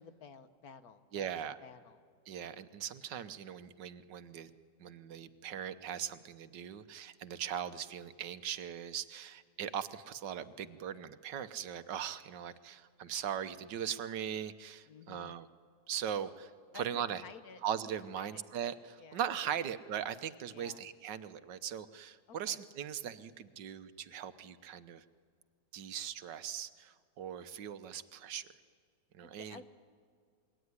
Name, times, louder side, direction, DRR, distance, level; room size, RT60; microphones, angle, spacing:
voice 1, 0.0-1.3 1.6-2.0 14.9-15.4 16.7-17.6 18.1-18.4 19.0-19.7 20.5-20.8 22.3-22.6 29.2-29.6, left 6 dB, 60° left, 11 dB, 1.6 m, -53 dB
voice 2, 1.1-1.6 2.3-4.5 4.8-15.5 15.9-17.2 17.6-25.0 25.7-28.5 29.1-29.6, right 9 dB, 85° right, 12 dB, 1.6 m, -40 dB
27.0 x 22.0 x 9.7 m, 2.1 s
omnidirectional pair, 1.9 m